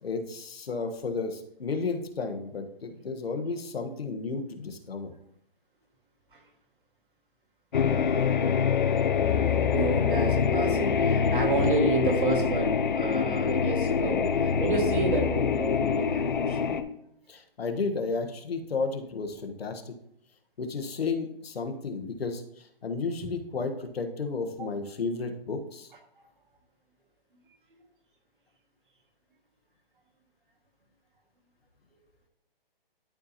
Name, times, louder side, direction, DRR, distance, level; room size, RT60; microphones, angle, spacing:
voice 1, 0.0-5.1 17.3-19.9 20.6-25.9, left 4 dB, 90° left, 5 dB, 1.3 m, -33 dB
sound 1, 7.7-16.8, left 6 dB, 55° left, 0.6 m, -25 dB
voice 2, 9.6-16.8 24.6-24.7, right 3 dB, 60° right, 2 dB, 1.9 m, -30 dB
12.0 x 4.1 x 2.9 m, 0.73 s
hypercardioid pair, 170°, 29 cm